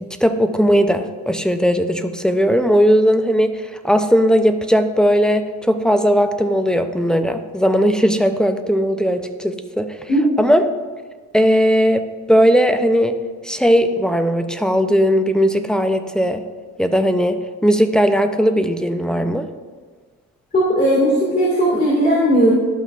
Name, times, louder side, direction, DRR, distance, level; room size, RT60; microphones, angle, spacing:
voice 1, 0.0-10.0 10.4-10.7 11.3-13.2 13.4-16.4 16.8-19.5, equal, 5° left, 8 dB, 0.5 m, -17 dB
voice 2, 20.5-22.5, equal, 30° left, -6 dB, 2.0 m, -16 dB
12.0 x 5.8 x 2.4 m, 1.5 s
cardioid pair, 90°, 30 cm